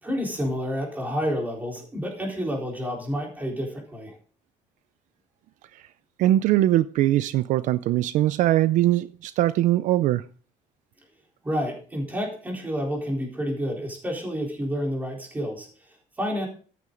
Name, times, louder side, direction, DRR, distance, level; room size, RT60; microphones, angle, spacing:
voice 1, 0.0-4.2 11.4-16.5, equal, 10° right, 3.9 m, -29 dB
voice 2, 6.2-10.2, right 14 dB, 65° right, 0.5 m, -21 dB
13.5 x 9.3 x 3.8 m
cardioid pair, 155°, 14 cm